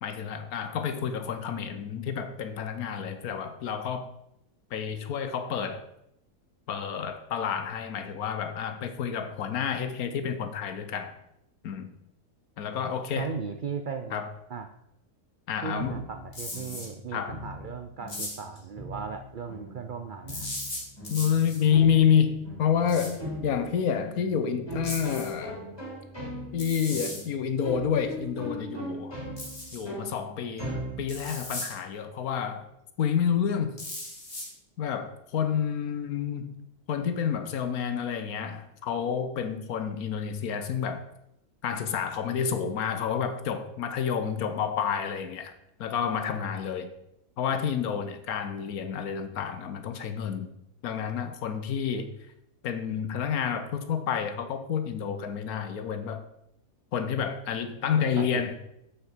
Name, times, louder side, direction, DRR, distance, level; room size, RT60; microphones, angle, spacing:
voice 1, 0.0-4.1 4.7-5.8 6.7-11.1 11.6-11.9 12.6-13.3 14.1-14.3 15.5-16.0 17.1-17.4 21.1-25.6 26.5-29.1 29.7-32.7 33.0-33.8 34.8-36.5 36.9-41.0 41.6-45.5 45.8-46.9 47.4-50.5 50.8-52.1 52.6-56.2 56.9-58.5, left 7 dB, 80° left, 9 dB, 1.3 m, -29 dB
voice 2, 13.2-14.2 14.5-14.7 15.6-20.5 58.0-58.4, right 5 dB, 80° right, 6 dB, 0.4 m, -37 dB
sound 1, 15.8-31.5, equal, 15° left, 3.7 m, -40 dB
sound 2, 16.3-16.9 18.1-18.6 20.3-21.6 22.9-23.1 24.8-25.3 26.6-27.2 29.4-29.8 31.1-31.7 33.8-34.5, left 1 dB, 40° left, 2.4 m, -37 dB
7.1 x 6.7 x 4.4 m, 0.79 s
omnidirectional pair, 1.5 m